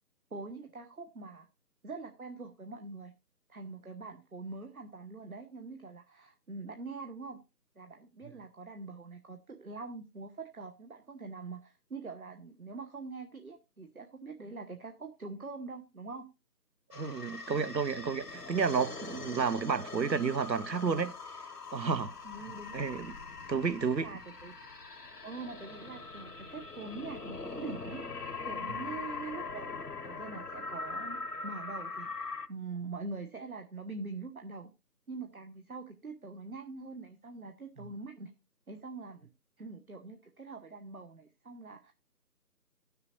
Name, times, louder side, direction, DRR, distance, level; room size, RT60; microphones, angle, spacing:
voice 1, 0.3-1.5 1.8-3.1 3.5-7.4 7.8-16.3 22.2-22.8 24.0-24.5 25.2-28.0 28.4-34.7 35.1-38.3 38.7-39.3 39.6-41.9, right 3 dB, 55° right, 1.2 m, -44 dB
sound 1, 16.9-32.5, left 4 dB, 65° left, 1.1 m, -42 dB
voice 2, 16.9-21.1 21.7-22.1 22.7-23.1 23.5-24.1 28.7-28.8, right 5 dB, 90° right, 0.9 m, -31 dB
16.0 x 6.7 x 2.9 m
figure-of-eight pair, 165°, 50 cm